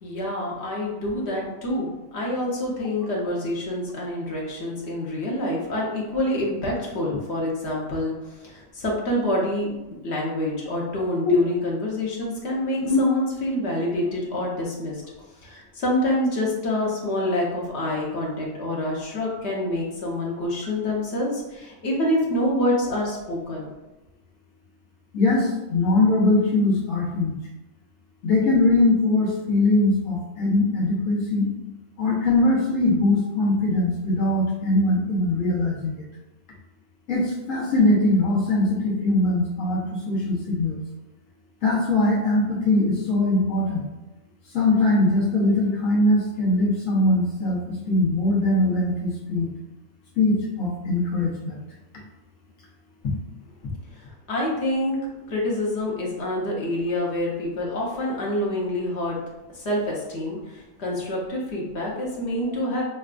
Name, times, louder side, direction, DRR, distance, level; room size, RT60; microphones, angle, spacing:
voice 1, 0.0-8.1 8.4-9.7 10.0-15.0 15.4-23.7 53.9-55.0 55.3-59.2 59.5-62.8, left 1 dB, 60° left, -4 dB, 1.1 m, -27 dB
voice 2, 25.1-27.4 28.2-31.5 32.0-35.9 37.1-40.8 41.6-43.8 44.5-47.6 47.9-49.5 50.2-51.6, left 2 dB, 85° left, -4 dB, 1.5 m, -21 dB
5.7 x 2.2 x 2.4 m, 1.0 s
omnidirectional pair, 1.3 m